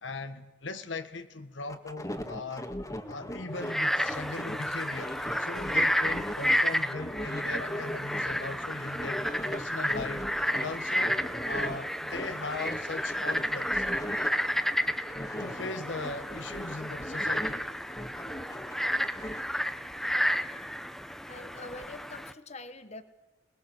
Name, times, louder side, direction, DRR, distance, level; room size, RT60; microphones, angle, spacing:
voice 1, 0.0-2.7 3.1-5.1 5.4-9.3 9.5-10.3 10.5-11.2 11.4-13.8 15.4-17.6, left 3 dB, 85° left, 1.6 m, -39 dB
sound 1, 1.7-6.6 6.9-11.8 12.1-14.3 14.6-17.6 17.9-19.4, left 1 dB, 20° left, 1.8 m, -39 dB
Frog, 3.6-22.3, equal, ahead, 0.9 m, -31 dB
voice 2, 15.0-15.4 21.2-23.0, left 2 dB, 35° left, 1.3 m, -45 dB
27.0 x 20.5 x 7.8 m
head